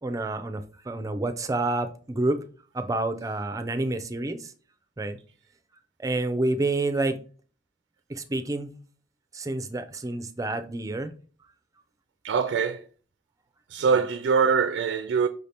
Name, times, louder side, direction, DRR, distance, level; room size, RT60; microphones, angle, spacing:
voice 1, 0.0-2.4 2.7-4.5 5.0-5.2 6.0-7.2 8.1-8.8 9.3-11.1 13.8-14.0, right 2 dB, 20° right, 0.4 m, -28 dB
voice 2, 12.2-12.8 13.7-15.3, right 5 dB, 85° right, 0.3 m, -23 dB
5.5 x 2.8 x 3.3 m
head